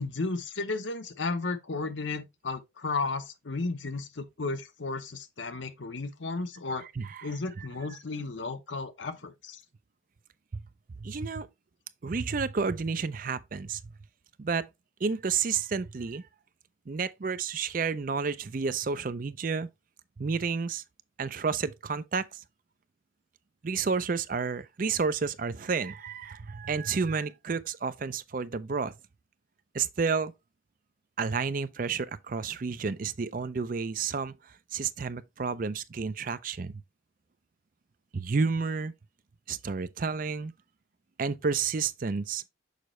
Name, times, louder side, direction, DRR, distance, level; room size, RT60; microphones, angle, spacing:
voice 1, 0.0-6.9 7.2-9.6, left 3 dB, 75° left, 0.9 m, -34 dB
voice 2, 7.0-7.3 7.6-7.7 11.0-11.5 12.0-13.8 14.4-14.7 15.0-16.3 16.9-19.7 20.2-20.8 21.2-22.4 23.6-28.9 29.7-30.3 31.2-34.3 34.7-36.8 38.1-38.9 39.5-40.5 41.2-42.5, right 5 dB, 45° right, 0.5 m, -30 dB
6.6 x 5.1 x 3.1 m
head